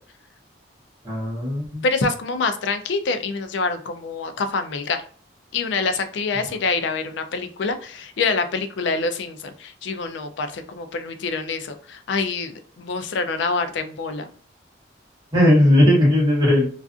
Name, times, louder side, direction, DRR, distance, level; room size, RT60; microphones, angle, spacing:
voice 1, 1.0-1.8 15.3-16.7, left 1 dB, 20° right, -7 dB, 0.9 m, -17 dB
voice 2, 1.8-5.0 5.5-14.3, left 4 dB, 70° left, 8 dB, 0.4 m, -26 dB
2.4 x 2.4 x 2.4 m, 0.43 s
head